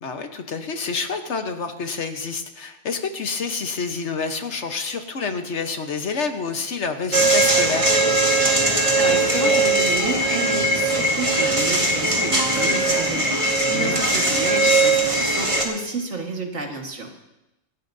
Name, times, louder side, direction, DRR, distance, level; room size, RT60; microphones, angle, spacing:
voice 1, 0.0-7.9 13.7-14.0, left 4 dB, 65° left, 6 dB, 1.4 m, -28 dB
sound 1, 7.1-15.6, right 2 dB, 25° right, 1.9 m, -20 dB
voice 2, 9.0-17.1, right 2 dB, 70° right, 2 dB, 2.1 m, -30 dB
26.0 x 12.5 x 2.7 m, 0.94 s
omnidirectional pair, 1.3 m